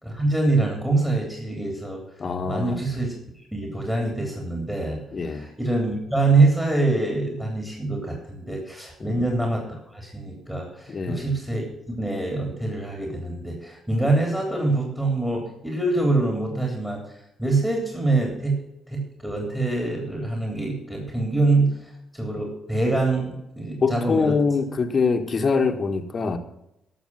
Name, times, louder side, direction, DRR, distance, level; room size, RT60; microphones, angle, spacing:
voice 1, 0.0-2.0 2.4-9.6 9.9-17.0 17.4-18.6 18.9-24.4, right 2 dB, 10° right, 1 dB, 3.3 m, -25 dB
voice 2, 2.2-2.8 5.1-5.5 9.0-9.2 10.9-11.4 23.8-26.4, left 4 dB, 40° left, 7 dB, 1.4 m, -24 dB
12.5 x 6.7 x 7.5 m, 0.85 s
cardioid pair, 90°, 0 cm